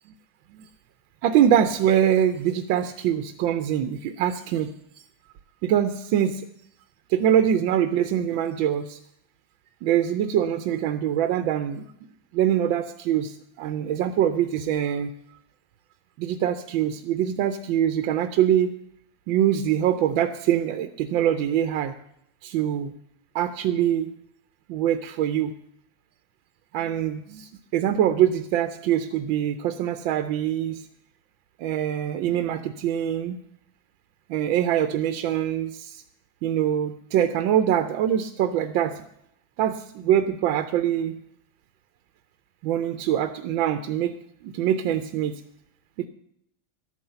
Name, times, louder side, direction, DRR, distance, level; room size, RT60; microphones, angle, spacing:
voice 1, 1.2-4.7 5.6-6.5 7.1-9.0 9.8-11.9 12.3-15.1 16.2-18.7 19.3-21.9 22.4-22.9 23.3-24.1 24.7-25.5 26.7-30.9 31.6-33.4 34.3-36.0 36.4-39.0 39.6-41.2 42.6-44.2 44.4-45.4 46.0-46.1, right 10 dB, 85° right, 9 dB, 1.5 m, -24 dB
11.5 x 9.7 x 6.8 m, 0.73 s
omnidirectional pair, 2.1 m